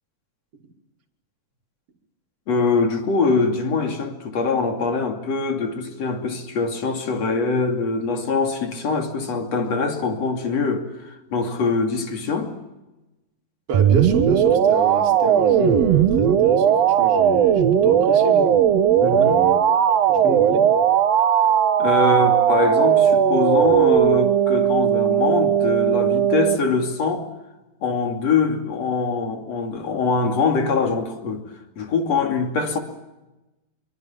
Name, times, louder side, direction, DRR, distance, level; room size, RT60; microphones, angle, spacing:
voice 1, 2.5-10.9 11.3-12.5 19.0-19.4 21.8-27.3 27.8-31.4 31.8-32.8, left 4 dB, 45° left, 3.6 m, -23 dB
voice 2, 13.7-18.6 19.1-19.6 19.9-20.7, right 3 dB, 40° right, 3.7 m, -27 dB
sound 1, 13.7-26.6, right 9 dB, 60° right, 1.9 m, -17 dB
24.5 x 24.0 x 7.4 m
omnidirectional pair, 4.2 m